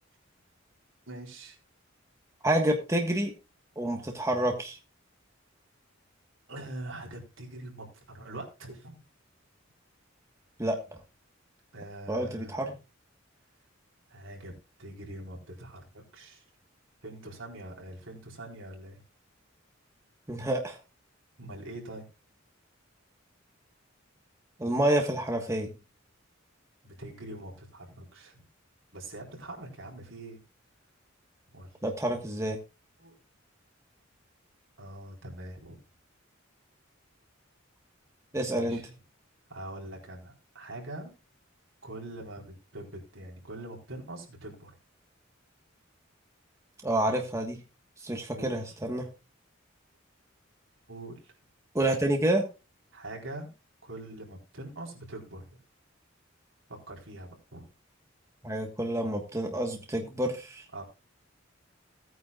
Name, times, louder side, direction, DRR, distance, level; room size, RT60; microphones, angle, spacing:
voice 1, 1.1-1.6 6.5-9.0 11.7-12.8 14.1-14.5 14.8-16.4 17.0-19.0 21.4-22.1 26.8-28.4 28.9-30.4 31.5-31.7 33.0-33.2 34.8-35.8 38.5-38.9 39.5-41.1 41.8-44.7 48.3-48.8 50.9-51.3 52.9-53.5 53.8-55.5 56.7-57.7 60.7-60.8, right 1 dB, 70° right, 0 dB, 4.1 m, -43 dB
voice 2, 2.4-3.3 3.8-4.8 10.6-10.8 12.1-12.7 20.3-20.8 24.6-25.7 31.8-32.6 38.3-38.8 46.8-47.6 48.0-49.1 51.7-52.5 58.4-60.6, right 1 dB, 15° right, 2 dB, 1.4 m, -28 dB
17.0 x 9.2 x 2.4 m, 0.28 s
head